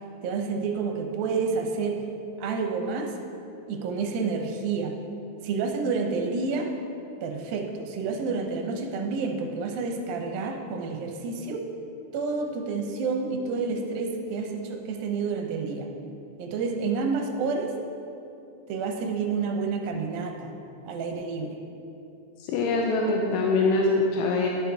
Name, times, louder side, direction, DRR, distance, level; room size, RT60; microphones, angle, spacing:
voice 1, 0.2-2.1 2.4-3.2 3.7-5.0 5.4-6.7 7.2-11.6 12.1-15.9 16.4-17.7 18.7-20.5 20.8-21.6, right 4 dB, 80° right, 3 dB, 2.5 m, -29 dB
voice 2, 22.4-24.5, left 3 dB, 80° left, -1 dB, 2.1 m, -23 dB
11.0 x 6.3 x 3.4 m, 2.7 s
omnidirectional pair, 4.2 m